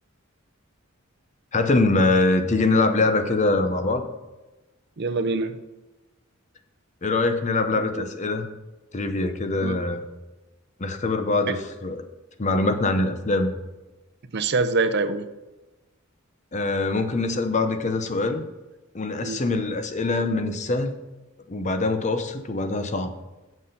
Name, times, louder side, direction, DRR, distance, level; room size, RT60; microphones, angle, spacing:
voice 1, 1.5-4.1 7.0-8.5 8.9-10.0 10.8-12.0 12.4-13.6 16.5-18.4 18.9-20.9 21.5-23.1, left 2 dB, 35° left, 8 dB, 0.7 m, -23 dB
voice 2, 5.0-5.6 7.9-8.1 9.6-9.8 11.5-11.6 14.3-15.3 19.2-19.4, right 3 dB, 50° right, 9 dB, 0.6 m, -25 dB
6.9 x 6.3 x 5.6 m, 1.1 s
head